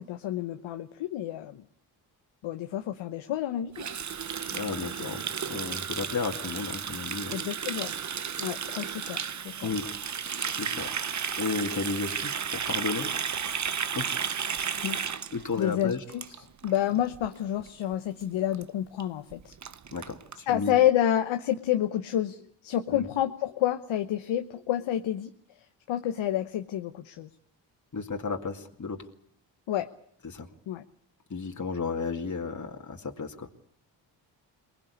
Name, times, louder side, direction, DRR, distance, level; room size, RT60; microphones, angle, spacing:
voice 1, 0.0-1.6 2.4-3.9 7.3-7.9 8.4-9.2 9.4-9.7 14.8-15.0 15.6-16.2 16.6-19.5 20.5-25.3 25.9-27.3 29.7-29.9 30.7-30.8, left 11 dB, 75° left, 8 dB, 1.0 m, -29 dB
Water tap faucet, 3.7-16.8 17.0-17.3 17.6-17.9 18.2-18.3 18.5-18.6 19.0-19.1 19.3-20.4, right 7 dB, 35° right, 0.9 m, -33 dB
voice 2, 4.5-7.4 9.6-9.9 10.5-10.9 11.4-13.1 13.4-14.1 15.3-16.0 19.9-20.8 22.9-23.1 27.9-29.1 30.2-30.5 31.3-33.5, left 4 dB, 40° left, 2 dB, 2.4 m, -33 dB
23.0 x 19.5 x 8.5 m, 0.66 s
supercardioid pair, 50°, 46 cm